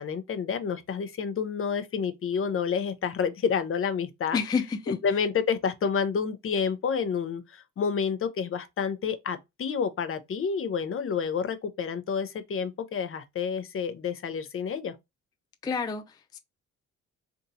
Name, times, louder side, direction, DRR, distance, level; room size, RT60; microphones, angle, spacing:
voice 1, 0.0-4.4 4.9-14.9, left 6 dB, 45° left, 0.7 m, -29 dB
voice 2, 4.3-5.2 15.6-16.4, left 5 dB, 15° left, 0.3 m, -30 dB
3.5 x 2.7 x 2.6 m
cardioid pair, 90°, 30 cm